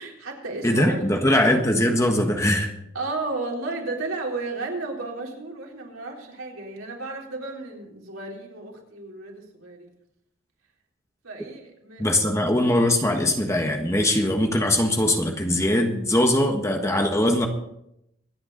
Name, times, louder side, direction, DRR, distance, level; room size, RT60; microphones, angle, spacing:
voice 1, 0.0-0.8 1.1-1.3 2.9-9.9 11.2-12.2, right 3 dB, 85° right, -1 dB, 3.8 m, -33 dB
voice 2, 0.6-2.7 12.0-17.5, left 1 dB, 15° left, 4 dB, 1.4 m, -21 dB
26.0 x 9.4 x 4.0 m, 0.80 s
head